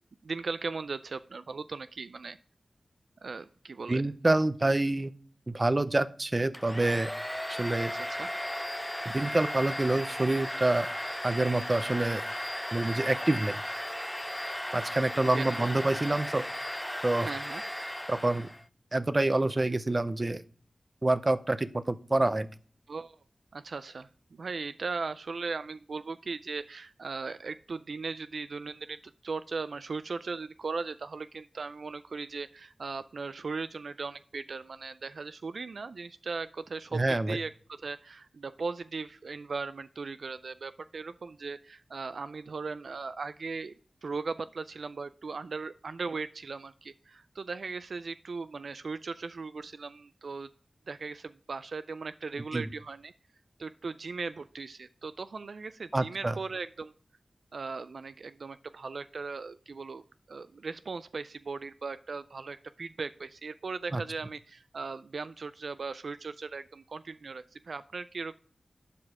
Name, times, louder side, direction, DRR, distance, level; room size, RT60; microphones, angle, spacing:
voice 1, 0.2-2.4 3.2-4.0 7.9-8.3 15.3-15.7 17.2-17.6 22.9-23.2 23.5-43.8 44.0-50.5 50.9-53.1 53.6-56.9 57.5-68.4, right 4 dB, 80° right, 13 dB, 0.3 m, -38 dB
voice 2, 3.9-5.1 5.5-7.1 7.6-7.9 9.0-10.9 11.2-12.2 12.7-13.5 14.7-16.5 17.0-17.3 18.1-18.5 18.9-20.4 21.0-22.5 36.9-37.4 52.5-52.6 55.9-56.3 63.9-64.0, right 2 dB, 35° right, 14 dB, 0.7 m, -27 dB
Domestic sounds home sounds, 6.5-18.6, left 1 dB, 10° left, 0.3 m, -36 dB
11.5 x 5.0 x 4.7 m, 0.43 s
cardioid pair, 50°, 0 cm